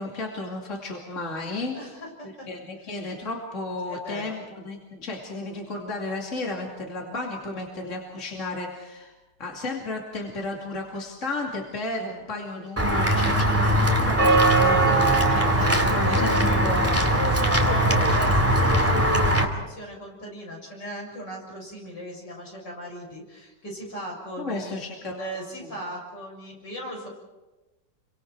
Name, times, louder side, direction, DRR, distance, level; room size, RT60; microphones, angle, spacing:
voice 1, 0.0-1.8 2.2-9.1 9.4-17.7 24.4-25.3 25.6-25.7, left 2 dB, 40° left, -1 dB, 3.0 m, -33 dB
voice 2, 1.7-2.5 3.8-4.4 14.7-16.2 17.3-27.1, equal, 75° left, -1 dB, 7.6 m, -38 dB
Walk footsteps / Bell, 12.8-19.4, right 1 dB, 10° right, 2.3 m, -20 dB
29.5 x 25.0 x 4.7 m, 1.1 s
omnidirectional pair, 1.9 m